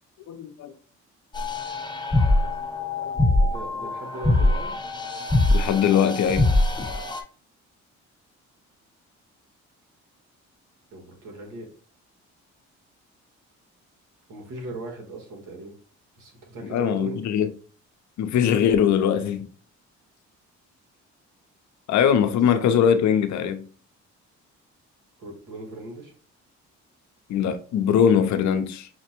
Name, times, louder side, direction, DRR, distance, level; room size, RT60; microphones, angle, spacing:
voice 1, 0.3-0.7 2.1-2.5 3.0-3.1 5.5-6.5 16.7-17.5 18.2-19.5 21.9-23.6 27.3-28.9, left 8 dB, 70° left, 0.6 m, -21 dB
sound 1, 1.3-7.2, left 2 dB, 15° left, 0.8 m, -23 dB
voice 2, 3.4-4.8 10.9-11.7 14.3-15.7 16.2-17.2 22.1-22.3 25.2-26.1, right 2 dB, 85° right, 1.5 m, -38 dB
5.8 x 2.1 x 2.9 m
cardioid pair, 90°, 30 cm